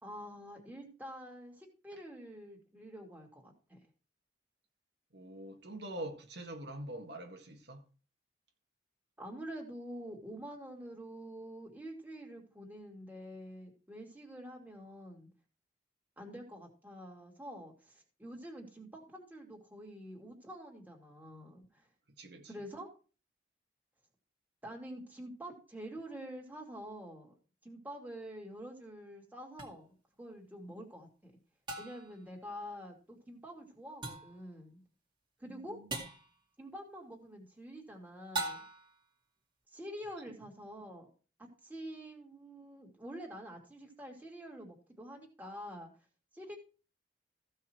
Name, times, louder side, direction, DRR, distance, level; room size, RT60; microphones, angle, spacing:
voice 1, 0.0-3.8 9.2-15.3 16.2-21.8 22.5-22.9 24.6-27.3 27.6-29.9 30.2-31.3 31.8-34.8 35.4-35.8 36.6-38.6 39.7-41.1 41.4-45.9 46.3-46.6, equal, 10° right, 2.6 m, -47 dB
voice 2, 5.1-7.8 22.2-22.5 35.5-36.1 40.3-40.4, right 1 dB, 70° right, 1.9 m, -45 dB
sound 1, 29.6-29.7 31.7-32.2 34.0-34.4 35.9-36.3 38.3-39.0, right 2 dB, 25° right, 2.3 m, -39 dB
15.5 x 5.7 x 4.6 m
head